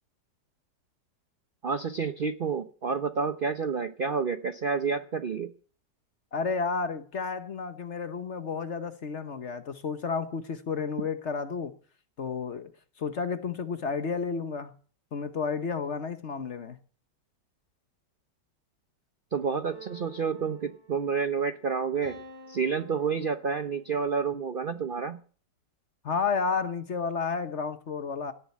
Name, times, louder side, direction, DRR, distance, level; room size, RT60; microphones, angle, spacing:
voice 1, 1.6-5.5 19.3-22.2 22.5-25.2, right 5 dB, 50° right, 0.6 m, -29 dB
voice 2, 6.3-11.7 12.2-12.7 13.0-14.7 15.1-16.8 26.0-28.3, left 5 dB, 45° left, 1.2 m, -31 dB
sound 1, 19.7-21.3 22.0-24.0, right 3 dB, 80° right, 4.7 m, -49 dB
17.5 x 7.5 x 8.4 m
omnidirectional pair, 1.8 m